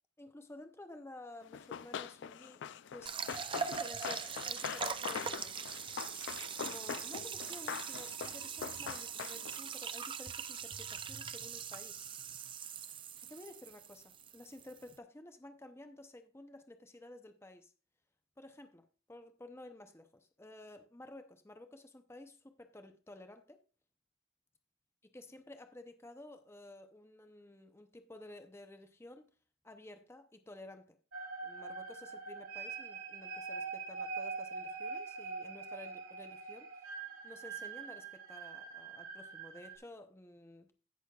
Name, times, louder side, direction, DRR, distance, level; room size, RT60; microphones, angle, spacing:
voice 1, 0.2-2.6 2.9-3.2 3.5-5.8 6.6-12.1 13.3-17.7 18.4-23.6 25.0-29.3 29.6-31.0 31.4-36.9 37.2-40.7, left 1 dB, 10° left, 0.7 m, -53 dB
Run, 1.5-9.7, left 7 dB, 60° left, 0.4 m, -43 dB
sound 1, 3.1-15.0, right 7 dB, 25° right, 0.4 m, -42 dB
sound 2, 31.1-39.8, right 4 dB, 80° right, 3.2 m, -43 dB
16.5 x 6.2 x 2.3 m
head